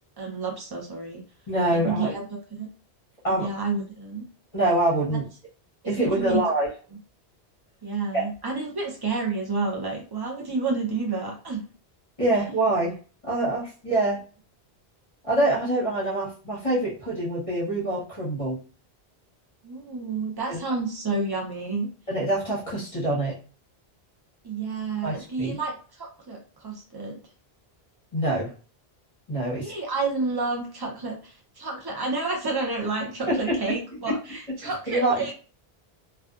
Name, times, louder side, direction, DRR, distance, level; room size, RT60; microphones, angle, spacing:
voice 1, 0.2-1.2 1.7-2.2 2.6-2.7 3.3-4.3 6.0-6.4 7.8-11.6 19.6-21.9 24.4-27.2 29.5-35.3, right 3 dB, 25° right, 0 dB, 0.6 m, -30 dB
voice 2, 1.5-2.2 3.2-3.5 4.5-5.2 5.9-6.7 8.1-8.2 12.2-13.0 13.2-14.2 15.2-18.6 20.5-20.6 22.1-23.4 25.0-25.6 28.1-28.5 29.3-29.7 33.3-33.6 34.1-34.2 34.6-35.2, right 1 dB, 35° left, -6 dB, 0.9 m, -25 dB
2.4 x 2.3 x 2.3 m, 0.38 s
omnidirectional pair, 1.1 m